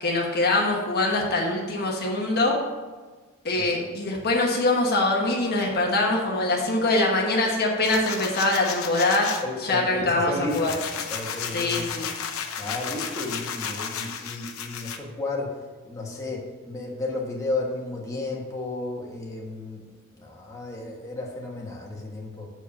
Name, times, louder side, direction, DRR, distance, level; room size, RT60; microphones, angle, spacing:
voice 1, 0.0-2.6 3.4-10.8 11.5-12.1, left 2 dB, 50° left, -1 dB, 1.2 m, -23 dB
sound 1, 7.8-9.4 10.0-15.0, left 7 dB, 70° left, 0.8 m, -33 dB
voice 2, 9.4-10.8 11.1-11.9 12.6-15.6 15.8-19.9 20.1-22.5, left 2 dB, 15° left, -3 dB, 1.4 m, -33 dB
7.0 x 4.8 x 7.0 m, 1.4 s
head